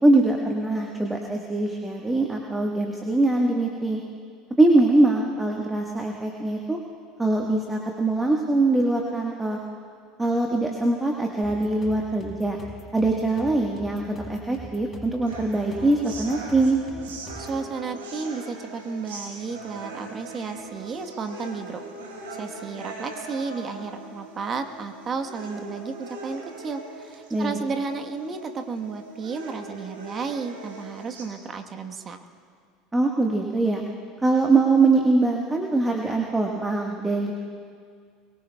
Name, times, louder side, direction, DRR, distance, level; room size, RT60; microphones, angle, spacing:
voice 1, 0.0-4.0 4.6-6.8 7.2-9.6 10.2-12.6 12.9-16.8 27.3-27.6 32.9-33.8 34.2-37.3, right 2 dB, 10° right, 0 dB, 1.5 m, -22 dB
sound 1, 11.4-17.6, equal, 25° left, 5.0 m, -42 dB
sound 2, 15.3-31.3, right 2 dB, 80° right, 3.3 m, -40 dB
voice 2, 17.3-21.8 22.4-32.2, right 4 dB, 35° right, 5 dB, 1.3 m, -33 dB
23.0 x 22.0 x 2.4 m, 2.1 s
hypercardioid pair, 75°, 0 cm